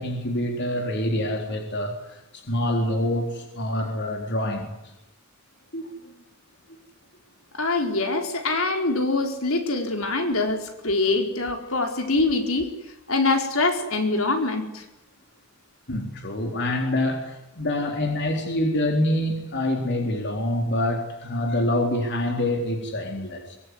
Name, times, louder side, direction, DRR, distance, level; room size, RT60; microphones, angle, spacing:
voice 1, 0.0-4.7 5.7-5.9 15.9-23.6, left 1 dB, 55° left, 3 dB, 4.0 m, -26 dB
voice 2, 7.5-12.7 13.1-14.8, left 3 dB, 75° left, 4 dB, 4.7 m, -24 dB
24.5 x 23.5 x 9.8 m, 0.88 s
head